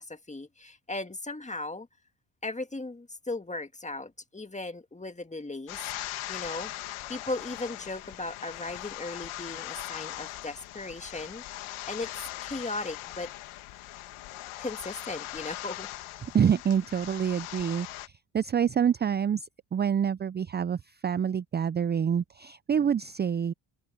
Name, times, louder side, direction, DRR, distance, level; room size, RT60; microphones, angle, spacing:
voice 1, 0.0-1.9 2.4-5.8 6.3-6.7 7.1-11.4 11.9-12.1 12.4-13.3 14.6-15.9, left 2 dB, 15° left, 2.0 m, -37 dB
sound 1, 5.7-18.1, left 15 dB, 85° left, 1.8 m, -40 dB
voice 2, 16.3-23.5, right 8 dB, 25° right, 0.4 m, -27 dB
supercardioid pair, 70°, 48 cm